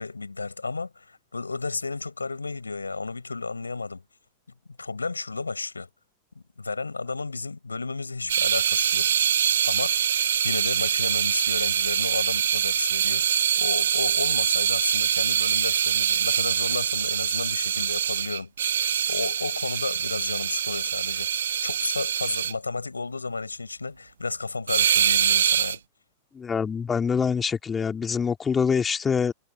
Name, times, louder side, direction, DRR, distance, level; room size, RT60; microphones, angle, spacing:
voice 1, 0.0-4.0 4.8-5.9 6.3-9.1 9.6-18.5 19.1-21.3 21.6-25.8, left 3 dB, 80° left, 6.6 m, -33 dB
sound 1, 8.3-22.5 24.7-25.8, right 9 dB, 65° right, 1.7 m, -24 dB
voice 2, 26.3-29.3, left 6 dB, 20° left, 3.2 m, -25 dB
figure-of-eight pair, 90°, 0 cm